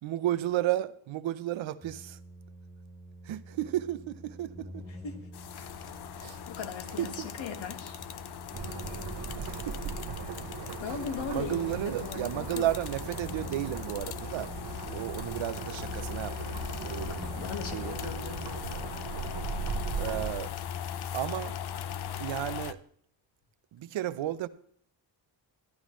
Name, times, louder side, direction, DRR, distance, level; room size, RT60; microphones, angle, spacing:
voice 1, 0.0-2.2 3.2-4.8 5.8-5.9 6.2-6.4 7.0-7.3 9.4-9.9 11.3-14.5 14.9-17.3 17.7-18.0 19.9-20.5 21.1-21.5 22.2-22.8 23.7-24.5, right 13 dB, 85° right, 0.8 m, -33 dB
sound 1, 1.8-20.7, equal, 5° left, 2.9 m, -48 dB
voice 2, 4.9-5.2 5.5-5.7 6.1-8.0 10.4-10.5 10.8-12.7 17.0-18.8, left 6 dB, 85° left, 1.8 m, -39 dB
sound 2, 5.3-22.7, left 10 dB, 60° left, 0.6 m, -39 dB
sound 3, 8.5-20.3, right 6 dB, 60° right, 1.2 m, -39 dB
13.5 x 11.5 x 3.1 m
wide cardioid pair, 165°, 45 cm